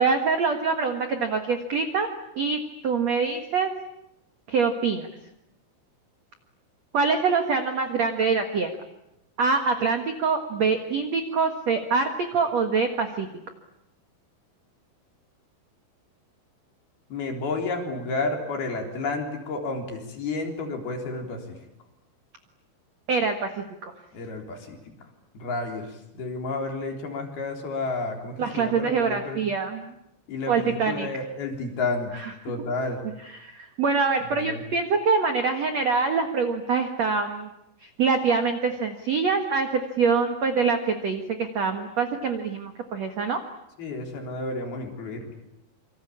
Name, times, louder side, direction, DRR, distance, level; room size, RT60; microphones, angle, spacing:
voice 1, 0.0-2.1 2.3-3.7 4.5-5.1 6.9-8.7 9.4-13.3 23.1-23.9 28.4-29.9 30.5-31.1 32.1-32.3 33.3-37.5 37.8-43.4, right 5 dB, 65° right, 6 dB, 1.6 m, -25 dB
voice 2, 17.1-21.6 24.1-25.0 25.3-29.4 30.3-32.1 32.4-33.0 34.3-34.6 43.8-45.3, left 3 dB, 50° left, 2 dB, 5.4 m, -31 dB
27.5 x 25.0 x 8.6 m, 0.85 s
omnidirectional pair, 5.8 m